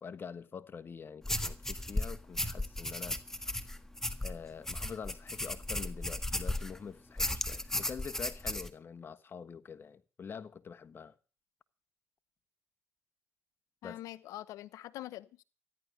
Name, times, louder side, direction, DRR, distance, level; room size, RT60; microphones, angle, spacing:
voice 1, 0.0-3.2 4.2-11.1 13.8-14.0, left 6 dB, 45° left, 1.3 m, -45 dB
sound 1, 1.2-6.8 7.2-8.7, left 1 dB, 10° left, 1.6 m, -35 dB
voice 2, 13.8-15.4, left 14 dB, 80° left, 1.0 m, -44 dB
14.0 x 10.5 x 6.7 m
supercardioid pair, 75°, 5 cm